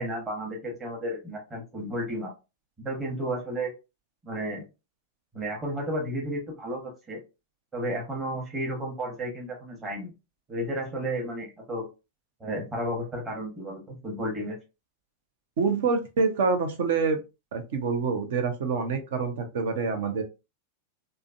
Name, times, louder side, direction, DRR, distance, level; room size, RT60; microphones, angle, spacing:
voice 1, 0.0-2.3 2.8-3.7 4.2-4.6 5.3-7.2 7.7-10.1 10.5-11.9 12.4-14.6, right 1 dB, 20° right, -1 dB, 1.3 m, -32 dB
voice 2, 15.6-17.2 17.5-20.2, right 4 dB, 55° right, 6 dB, 0.8 m, -26 dB
3.7 x 2.2 x 2.5 m, 0.27 s
figure-of-eight pair, 90°, 0 cm